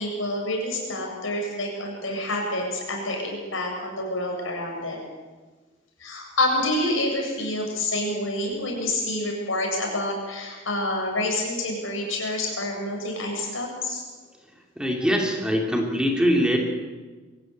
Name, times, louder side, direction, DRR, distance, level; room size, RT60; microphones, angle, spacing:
voice 1, 0.0-5.0 6.0-14.0, left 1 dB, 75° left, 1 dB, 7.4 m, -28 dB
voice 2, 14.8-16.6, equal, 5° right, 1 dB, 2.8 m, -22 dB
23.0 x 16.0 x 9.3 m, 1.4 s
head